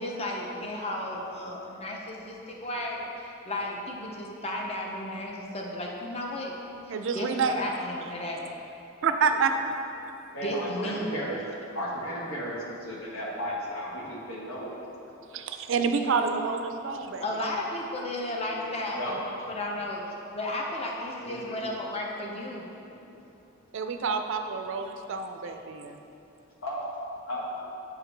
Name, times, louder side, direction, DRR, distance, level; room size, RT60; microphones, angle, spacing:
voice 1, 0.0-6.5 6.9-8.5 10.4-11.1 17.2-19.2 19.5-20.0 20.3-22.7, left 1 dB, 30° left, -1 dB, 0.7 m, -34 dB
voice 2, 6.9-7.6 9.0-9.5 15.3-17.2 23.7-26.0, right 5 dB, 65° right, 7 dB, 0.4 m, -28 dB
voice 3, 10.3-11.4 11.7-14.7 16.0-16.1 18.9-19.5 21.2-21.6 26.6-26.8 27.3-27.4, equal, 80° left, -4 dB, 1.3 m, -34 dB
8.4 x 4.8 x 3.3 m, 2.9 s
head